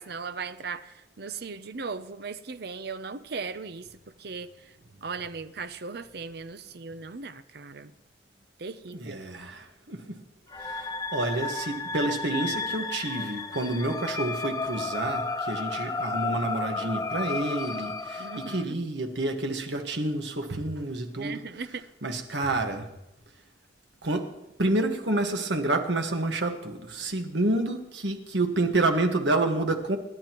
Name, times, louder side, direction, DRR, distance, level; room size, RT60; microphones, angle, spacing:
voice 1, 0.0-4.7 5.0-7.9 8.6-9.2 18.2-18.7 21.1-21.8, right 4 dB, 65° right, 0.7 m, -38 dB
voice 2, 8.9-10.2 10.6-21.4 22.0-22.9 24.0-24.3 24.6-30.0, right 2 dB, 80° right, 1.6 m, -29 dB
sound 1, 10.5-18.6, left 3 dB, 20° left, 0.8 m, -32 dB
26.0 x 11.0 x 3.1 m
head